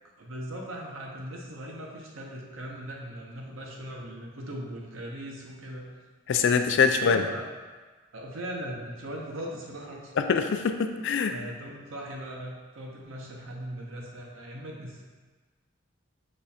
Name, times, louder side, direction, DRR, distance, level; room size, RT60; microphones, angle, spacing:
voice 1, 0.2-5.9 6.9-7.5 8.1-10.1 10.8-11.0 11.3-15.0, equal, 90° right, -1 dB, 0.8 m, -39 dB
voice 2, 6.3-7.2 10.2-11.4, left 5 dB, 65° left, 7 dB, 0.3 m, -24 dB
5.2 x 2.4 x 4.2 m, 1.3 s
head